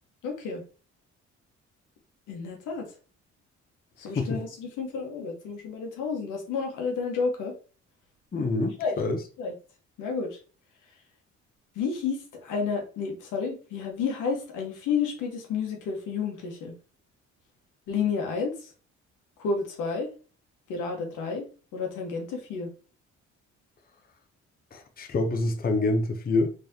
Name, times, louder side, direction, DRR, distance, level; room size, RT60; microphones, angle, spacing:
voice 1, 0.2-0.6 2.3-2.9 4.0-7.5 8.8-8.9 9.4-9.5 10.0-10.4 11.7-16.7 17.9-18.7 19.4-20.1 20.7-21.5 21.7-22.7, left 5 dB, 90° left, 1.2 m, -31 dB
voice 2, 8.3-9.2 24.7-26.5, left 2 dB, 30° left, 0.7 m, -26 dB
3.7 x 3.2 x 2.7 m
cardioid pair, 90°, 30 cm